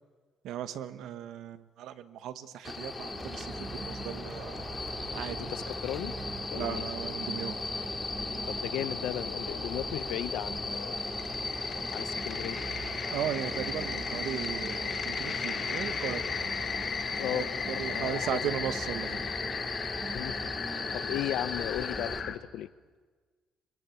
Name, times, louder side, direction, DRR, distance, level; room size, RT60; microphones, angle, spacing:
voice 1, 0.4-4.7 5.1-5.5 6.6-7.6 13.1-16.2 17.3-19.2, right 10 dB, 75° right, 12 dB, 1.2 m, -37 dB
sound 1, 2.6-22.2, left 3 dB, 15° left, 2.2 m, -37 dB
sound 2, 3.1-22.3, right 3 dB, 15° right, 1.7 m, -44 dB
voice 2, 5.5-6.2 6.5-6.8 8.5-11.0 11.9-12.6 17.2-17.5 17.9-18.5 20.0-20.5 20.9-22.7, left 13 dB, 80° left, 16 dB, 0.8 m, -36 dB
sound 3, 10.4-22.4, left 7 dB, 40° left, 1.1 m, -38 dB
24.5 x 23.0 x 8.4 m, 1.5 s
cardioid pair, 160°, 0 cm